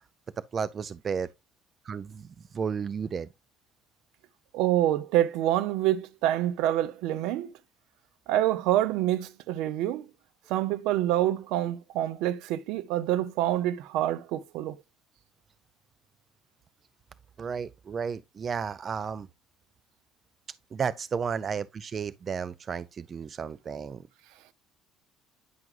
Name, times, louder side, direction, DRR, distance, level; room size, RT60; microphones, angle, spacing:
voice 1, 0.5-1.3 1.9-2.3 2.5-3.3 17.4-19.3 20.7-24.0, right 6 dB, 35° right, 0.4 m, -33 dB
voice 2, 4.5-7.5 8.3-10.1 10.5-14.8, right 13 dB, 80° right, 0.6 m, -26 dB
9.4 x 5.9 x 2.4 m
cardioid pair, 105°, 0 cm